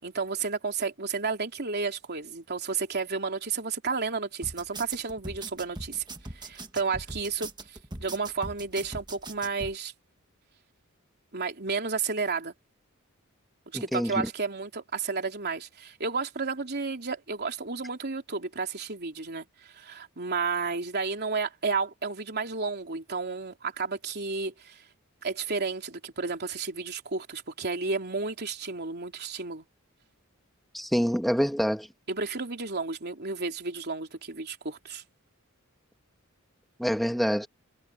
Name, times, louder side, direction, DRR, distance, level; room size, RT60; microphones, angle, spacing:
voice 1, 0.0-6.0 6.3-9.9 11.3-12.5 13.7-24.8 25.2-29.6 32.1-35.0, right 4 dB, 50° right, 3.4 m, -32 dB
sound 1, 4.4-9.7, right 2 dB, 20° right, 1.7 m, -40 dB
voice 2, 13.7-14.3 30.7-31.9 36.8-37.5, equal, ahead, 2.0 m, -26 dB
head